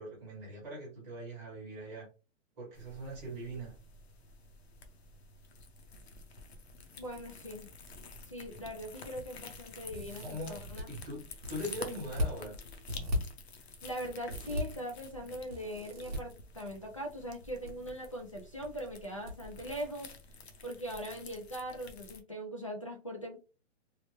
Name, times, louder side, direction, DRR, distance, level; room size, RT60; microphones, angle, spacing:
voice 1, 0.0-2.1 2.6-3.7 10.2-10.5 10.9-11.2 11.5-12.6, equal, 10° right, -7 dB, 1.0 m, -41 dB
sound 1, 2.7-22.2, left 3 dB, 55° left, 0.7 m, -50 dB
voice 2, 7.0-7.7 8.3-10.9 13.8-20.1 20.6-23.4, equal, 30° left, 1 dB, 0.4 m, -41 dB
sound 2, 9.9-10.8 11.4-12.3 12.9-13.2 14.3-14.6 15.5-16.2 17.3-17.7 18.0-18.1 19.3-19.4 19.7-19.8, left 1 dB, 30° right, 0.8 m, -36 dB
3.2 x 2.0 x 3.0 m, 0.33 s
hypercardioid pair, 175°, 37 cm